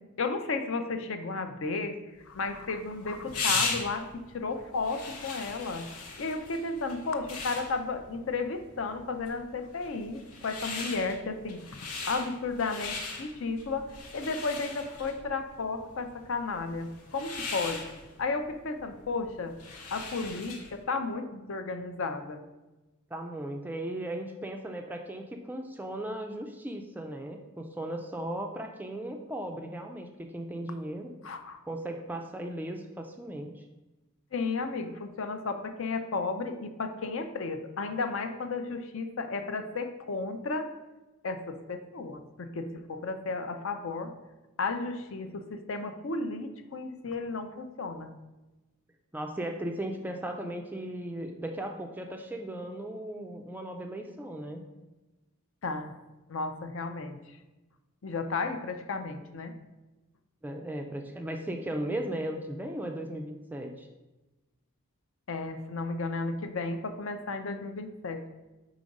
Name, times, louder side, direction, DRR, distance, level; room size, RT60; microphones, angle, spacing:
voice 1, 0.2-2.0 2.3-5.9 6.2-11.6 12.1-17.8 18.2-19.5 19.9-22.4 31.2-31.6 34.3-40.7 41.2-44.1 44.6-48.1 55.6-55.9 56.3-57.2 58.0-59.5 65.3-68.3, left 3 dB, 60° left, 7 dB, 0.5 m, -33 dB
sound 1, 2.3-20.8, left 4 dB, 80° left, 1.0 m, -39 dB
voice 2, 23.1-31.1 31.7-33.6 49.1-54.6 60.4-63.9, right 1 dB, 10° right, 4 dB, 0.3 m, -37 dB
4.9 x 3.8 x 5.2 m, 1.1 s
head